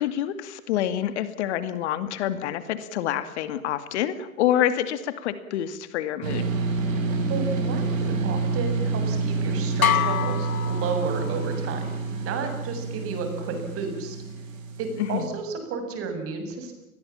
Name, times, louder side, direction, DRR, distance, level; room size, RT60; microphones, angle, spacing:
voice 1, 0.0-6.5 15.0-15.3, left 11 dB, 50° left, 12 dB, 2.4 m, -27 dB
sound 1, 6.2-15.3, right 4 dB, 65° right, 7.3 m, -28 dB
voice 2, 7.3-14.2 14.8-16.7, right 5 dB, 30° right, 6 dB, 7.3 m, -32 dB
sound 2, 9.8-11.6, left 9 dB, 80° left, 1.3 m, -26 dB
29.5 x 21.0 x 7.3 m, 0.91 s
hypercardioid pair, 110°, 42 cm